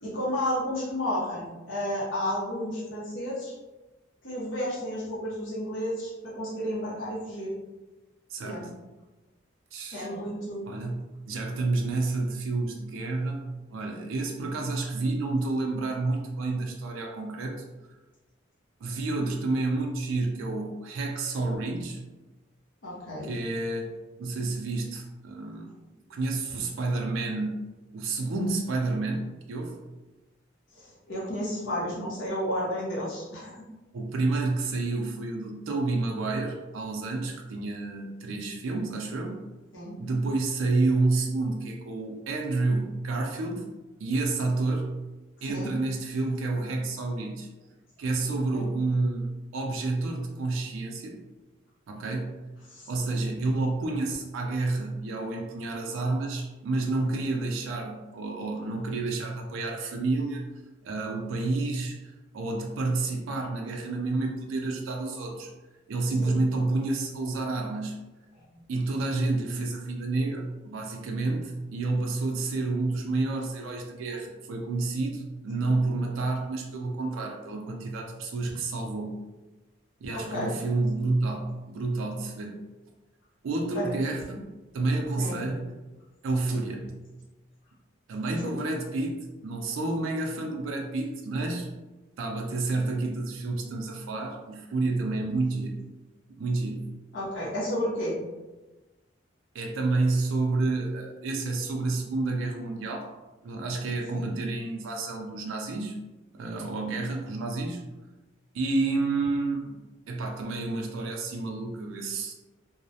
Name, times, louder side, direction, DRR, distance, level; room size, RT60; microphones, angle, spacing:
voice 1, 0.0-3.5 4.2-7.5 8.4-8.7 9.9-10.6 22.8-23.3 30.7-33.6 39.7-40.0 45.4-45.7 48.5-48.7 52.7-52.9 66.2-66.3 68.4-68.6 80.1-80.5 83.7-83.9 85.2-85.4 88.4-88.5 97.1-98.2 104.1-104.3, equal, 70° left, -7 dB, 0.7 m, -32 dB
voice 2, 8.3-8.7 9.7-10.1 10.7-13.4 13.7-17.6 18.8-22.0 23.2-23.9 24.2-25.7 26.1-27.6 27.9-29.2 29.5-29.8 33.9-39.4 40.0-43.7 44.0-45.0 45.4-47.5 48.0-51.2 51.9-52.4 52.9-60.4 60.8-65.5 65.9-67.9 68.7-79.2 80.0-82.6 83.4-84.4 84.7-85.7 86.2-87.0 88.1-89.2 89.4-91.7 92.2-95.8 96.3-96.9 99.5-103.1 103.4-106.0 106.3-107.8 108.5-109.7 110.1-112.3, right 3 dB, 80° right, 1 dB, 0.3 m, -29 dB
2.3 x 2.0 x 2.7 m, 1.1 s
head